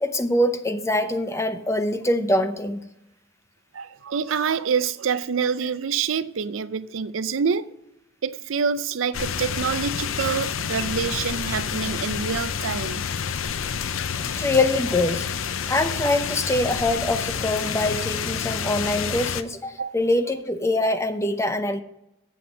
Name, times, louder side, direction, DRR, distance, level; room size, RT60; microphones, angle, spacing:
voice 1, 0.0-2.9 14.4-15.3 15.7-21.8, left 1 dB, 15° left, 0.7 m, -24 dB
voice 2, 3.7-7.7 8.2-13.1 19.8-19.9, right 6 dB, 75° right, 0.5 m, -26 dB
sound 1, 9.1-19.4, left 7 dB, 85° left, 0.6 m, -28 dB
8.3 x 8.0 x 5.3 m
head